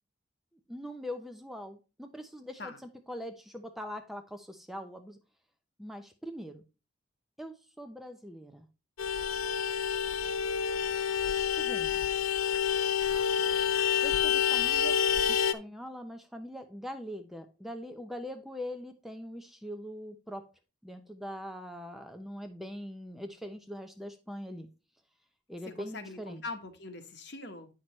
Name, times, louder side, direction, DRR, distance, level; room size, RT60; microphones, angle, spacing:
voice 1, 0.7-5.2 5.8-6.6 7.4-8.7 11.5-12.0 14.0-15.0 15.3-20.5 20.8-24.7 25.5-26.4, equal, ahead, 0.6 m, -42 dB
Vehicle horn car horn honking, 9.0-15.5, left 8 dB, 90° left, 0.6 m, -28 dB
voice 2, 25.6-27.7, left 3 dB, 55° left, 1.2 m, -42 dB
9.3 x 6.0 x 3.1 m
head